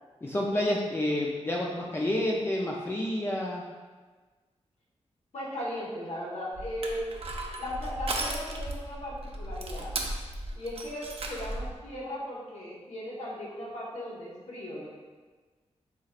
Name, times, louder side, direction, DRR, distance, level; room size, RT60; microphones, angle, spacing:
voice 1, 0.2-3.6, left 1 dB, 20° left, -3 dB, 0.5 m, -29 dB
voice 2, 5.3-7.1 7.6-9.9 10.5-14.9, equal, 70° left, -5 dB, 1.3 m, -37 dB
Crushing, 6.5-11.7, right 2 dB, 60° right, 0.5 m, -36 dB
6.8 x 3.1 x 2.4 m, 1.3 s
wide cardioid pair, 105°, 11 cm